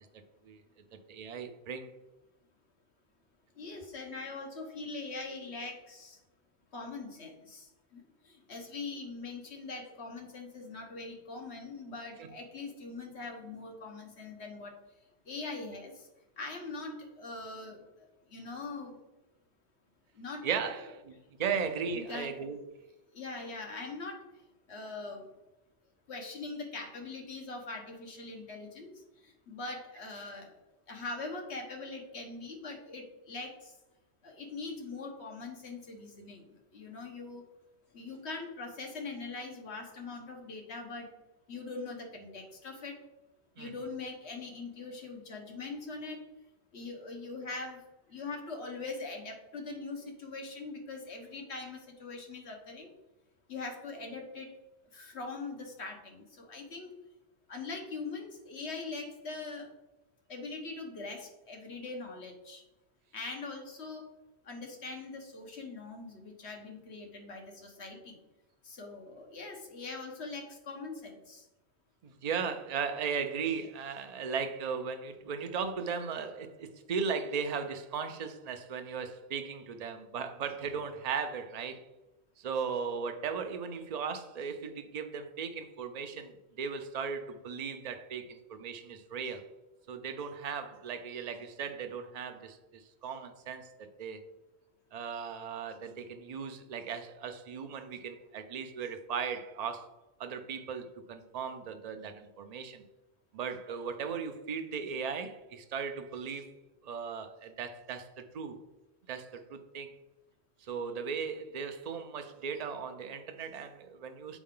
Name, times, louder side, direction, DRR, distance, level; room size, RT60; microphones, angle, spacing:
voice 1, 1.1-1.9 12.2-12.3 20.4-22.6 43.6-43.7 72.0-81.9 82.4-89.5 89.9-94.2 94.9-99.9 100.2-102.8 103.3-106.5 106.8-108.6 109.1-109.9 110.6-114.4, right 6 dB, 45° right, 0.6 m, -37 dB
voice 2, 3.6-6.2 6.7-7.7 7.9-14.8 15.3-15.9 16.4-17.8 18.3-19.0 20.2-20.5 20.8-20.9 21.9-22.3 23.1-24.2 24.7-25.2 26.1-28.9 29.5-30.5 30.9-33.7 34.2-37.4 37.9-41.1 41.5-43.0 43.6-46.2 46.7-47.8 48.1-52.9 53.5-54.5 54.9-56.9 57.5-59.7 60.3-62.6 63.1-64.0 64.5-68.2 68.6-71.4, left 3 dB, 80° left, 1.5 m, -42 dB
7.1 x 4.7 x 3.7 m
omnidirectional pair, 1.1 m